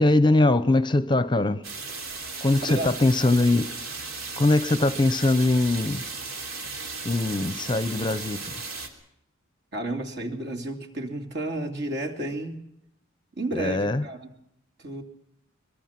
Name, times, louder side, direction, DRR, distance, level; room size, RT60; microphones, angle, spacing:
voice 1, 0.0-1.6 2.4-3.7 4.4-6.0 7.0-8.5 13.5-14.0, left 2 dB, 20° left, 0.7 m, -22 dB
sound 1, 1.6-8.9, right 4 dB, 90° right, 3.2 m, -36 dB
voice 2, 2.6-2.9 9.7-12.6 13.4-14.3 14.8-15.0, right 1 dB, 55° right, 3.1 m, -32 dB
23.5 x 21.5 x 6.0 m
head